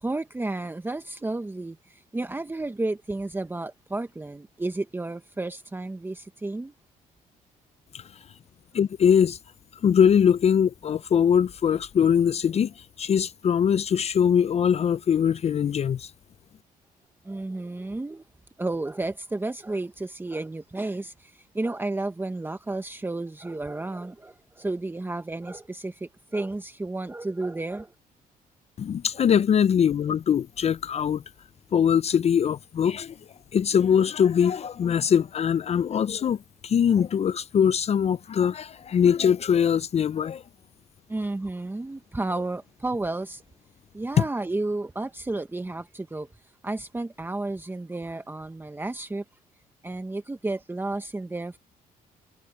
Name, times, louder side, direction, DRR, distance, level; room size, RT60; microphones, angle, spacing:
voice 1, 0.0-6.7 17.2-18.2 18.6-27.9 41.1-43.4 43.9-46.3 46.6-49.2 49.8-51.6, right 2 dB, 15° right, 1.1 m, -32 dB
voice 2, 8.7-9.4 9.8-16.1 28.8-31.2 31.7-33.2 33.5-40.4, left 8 dB, 45° left, 0.5 m, -22 dB
cardioid pair, 85°, 15 cm